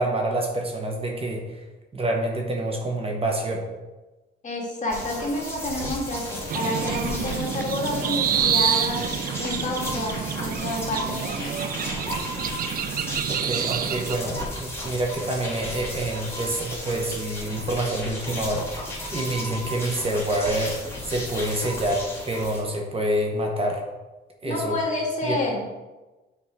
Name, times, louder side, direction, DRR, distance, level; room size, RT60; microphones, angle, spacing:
voice 1, 0.0-1.4 1.9-3.6 13.3-18.7 19.1-23.8 24.4-24.8 25.2-25.4, right 1 dB, 30° right, 1 dB, 1.1 m, -27 dB
voice 2, 4.4-9.0 9.4-11.7 24.4-25.6, left 2 dB, 40° left, -2 dB, 1.8 m, -29 dB
sound 1, 4.9-22.6, left 1 dB, 10° left, 2.2 m, -34 dB
sound 2, 6.5-14.2, right 8 dB, 45° right, 0.4 m, -28 dB
6.9 x 4.5 x 3.7 m, 1.1 s
cardioid pair, 90°, 20 cm